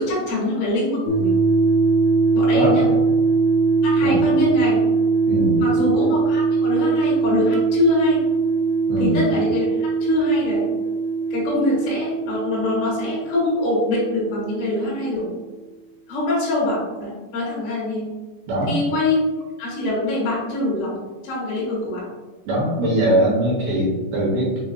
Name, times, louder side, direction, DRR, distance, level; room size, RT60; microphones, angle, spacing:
voice 1, 0.0-1.3 2.3-2.9 3.8-4.8 5.6-8.2 9.0-10.7 11.3-15.3 16.1-18.0 18.7-19.2 19.6-20.9 21.2-22.0, left 2 dB, 70° left, -8 dB, 3.3 m, -24 dB
sound 1, 1.1-15.0, right 4 dB, 90° left, 2.3 m, -21 dB
voice 2, 5.3-5.6 8.9-9.2 18.5-18.8 22.5-24.6, right 1 dB, 75° right, -6 dB, 2.4 m, -21 dB
7.3 x 2.6 x 2.3 m, 1.2 s
omnidirectional pair, 5.4 m